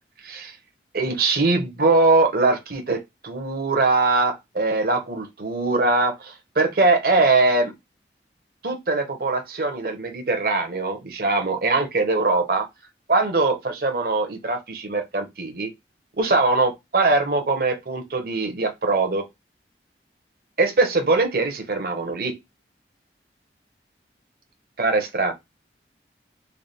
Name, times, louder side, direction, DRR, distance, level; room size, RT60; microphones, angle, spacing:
voice 1, 0.2-0.6 0.9-7.7 8.6-12.7 13.1-15.7 16.2-19.3 20.6-22.4 24.8-25.3, right 3 dB, 55° right, 1.0 m, -22 dB
3.3 x 2.4 x 4.0 m
head